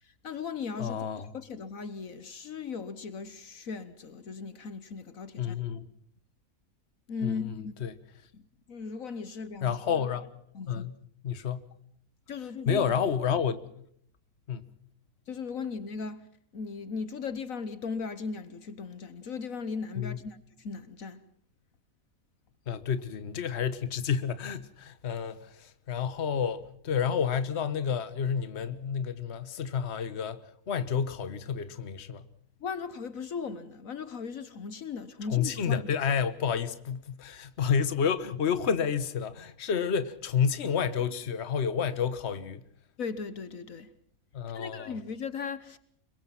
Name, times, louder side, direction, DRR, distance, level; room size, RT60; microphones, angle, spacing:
voice 1, 0.0-1.0 1.3-5.6 7.1-7.7 8.3-8.4 8.7-9.8 10.5-10.9 12.3-12.9 15.3-16.3 16.5-21.2 32.6-35.9 43.0-43.9 44.5-45.8, left 5 dB, 65° left, 1.5 m, -37 dB
voice 2, 0.8-1.3 5.4-5.9 7.2-7.4 7.8-7.9 9.6-10.3 10.7-11.0 11.2-11.7 12.7-13.6 14.5-14.7 20.0-20.2 22.7-32.2 35.3-42.6 44.3-44.9, left 7 dB, 50° left, 1.5 m, -30 dB
26.0 x 23.0 x 5.8 m
omnidirectional pair, 1.6 m